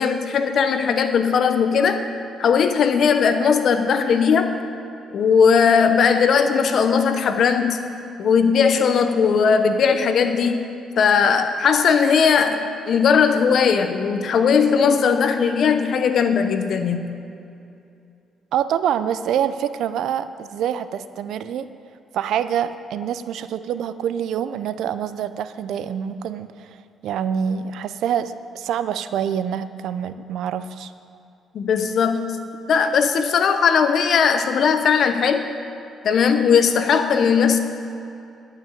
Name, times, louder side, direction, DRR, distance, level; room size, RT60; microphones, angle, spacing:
voice 1, 0.0-2.0 2.4-4.6 5.1-7.8 8.2-10.6 11.0-17.1 31.5-32.3 32.7-35.5 36.0-37.6, left 6 dB, 65° left, 8 dB, 0.9 m, -18 dB
voice 2, 18.5-21.7 22.1-30.9, right 9 dB, 80° right, 12 dB, 0.5 m, -26 dB
11.5 x 6.1 x 8.5 m, 2.6 s
cardioid pair, 90°, 0 cm